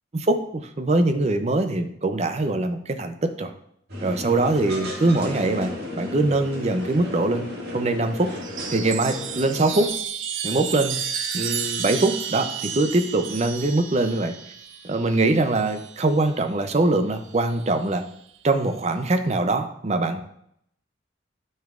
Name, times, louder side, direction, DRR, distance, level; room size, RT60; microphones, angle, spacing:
voice 1, 0.1-3.5 4.0-7.5 7.7-8.3 8.7-9.9 10.4-11.0 11.3-14.3 14.8-18.0 18.4-20.2, right 2 dB, 35° right, 8 dB, 0.5 m, -23 dB
sound 1, 3.9-9.9, left 1 dB, 55° right, 2.0 m, -34 dB
Chime, 8.3-16.1 17.4-18.0, right 7 dB, 90° right, 0.7 m, -32 dB
9.0 x 5.4 x 2.4 m, 0.71 s
head